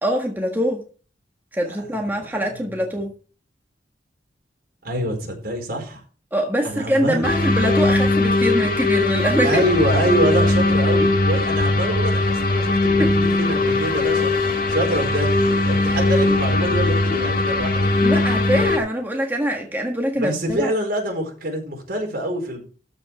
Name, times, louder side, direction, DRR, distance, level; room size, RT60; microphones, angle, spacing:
voice 1, 0.0-0.8 1.5-3.1 6.3-9.6 13.0-13.1 18.0-20.7, equal, 10° right, 1.5 m, -23 dB
voice 2, 4.8-6.0 6.6-7.2 9.4-17.9 20.2-22.6, right 1 dB, 55° right, 4.5 m, -25 dB
sound 1, 7.2-18.8, left 2 dB, 55° left, 2.0 m, -19 dB
13.5 x 5.3 x 6.0 m
head